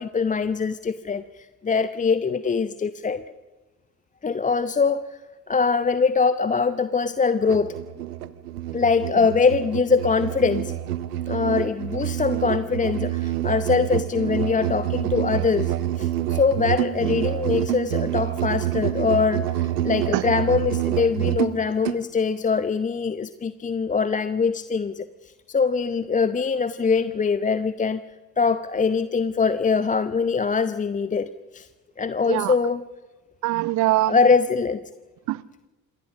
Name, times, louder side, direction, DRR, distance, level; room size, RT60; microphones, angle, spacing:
voice 1, 0.0-3.2 4.2-5.0 5.5-7.8 8.7-10.7 11.3-25.1 25.5-28.0 28.4-31.7 32.0-32.8 34.1-34.8, left 5 dB, 15° left, 0.7 m, -23 dB
Musical instrument, 7.4-22.0, right 13 dB, 75° right, 1.0 m, -27 dB
voice 2, 32.2-32.5 33.4-34.2 35.3-35.7, right 17 dB, 40° right, 0.6 m, -24 dB
27.5 x 20.0 x 6.3 m
figure-of-eight pair, 55°, 46 cm